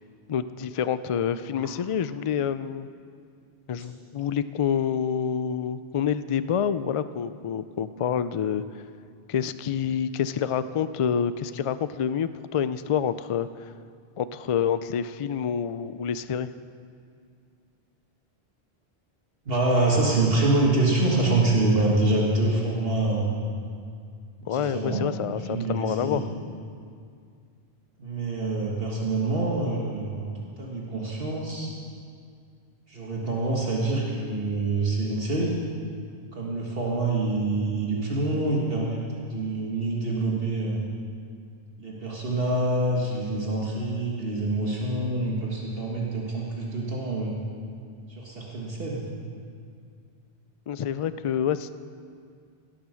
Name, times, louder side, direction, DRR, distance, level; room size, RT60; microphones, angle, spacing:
voice 1, 0.3-2.9 3.7-8.6 9.3-13.7 14.2-16.5 24.5-26.3 50.7-51.7, left 8 dB, 60° left, 13 dB, 0.3 m, -27 dB
voice 2, 19.5-23.4 24.4-25.0 25.3-26.2 28.0-30.3 30.6-31.7 32.9-35.5 36.3-40.8 41.8-47.4 48.1-49.1, right 2 dB, 65° right, -3 dB, 1.8 m, -26 dB
17.0 x 8.8 x 6.3 m, 2.3 s
omnidirectional pair, 1.0 m